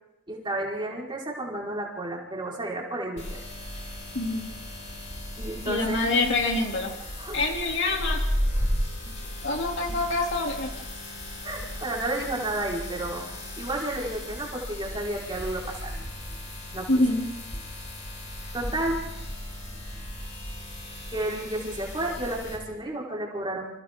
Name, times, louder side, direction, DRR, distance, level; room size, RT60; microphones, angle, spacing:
voice 1, 0.3-3.4 5.4-6.0 7.2-7.4 11.4-13.3 13.6-15.9 16.7-16.9 18.5-19.0 21.1-23.7, right 1 dB, 25° right, -3 dB, 4.5 m, -31 dB
sound 1, 3.2-22.6, equal, 30° left, 5.0 m, -35 dB
voice 2, 4.1-4.5 5.7-6.9 7.3-8.2 9.4-10.7 16.9-17.3, left 2 dB, 55° left, 1 dB, 2.9 m, -25 dB
29.0 x 27.5 x 3.7 m, 0.92 s
head